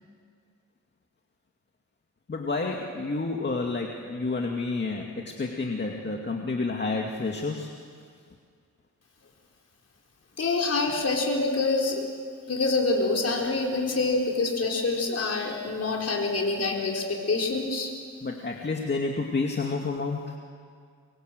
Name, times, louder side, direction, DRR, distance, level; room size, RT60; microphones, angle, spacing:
voice 1, 2.3-7.7 18.2-20.4, left 3 dB, 35° left, 1 dB, 2.2 m, -30 dB
voice 2, 10.4-12.1 12.5-17.9, left 3 dB, 50° left, 1 dB, 4.7 m, -26 dB
25.5 x 23.0 x 7.9 m, 2.1 s
cardioid pair, 85°, 31 cm